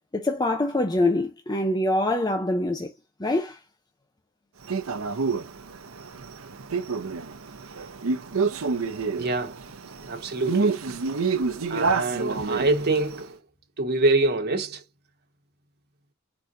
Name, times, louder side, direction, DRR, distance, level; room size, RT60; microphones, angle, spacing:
voice 1, 0.1-2.9 3.2-3.6, left 1 dB, 20° left, 0.7 m, -24 dB
Male speech man speaking, 4.7-13.2, right 4 dB, 85° right, 0.7 m, -28 dB
voice 2, 9.1-9.6 10.0-10.8 11.7-13.4 13.8-14.8, right 2 dB, 50° right, 1.4 m, -25 dB
4.5 x 4.1 x 2.6 m
head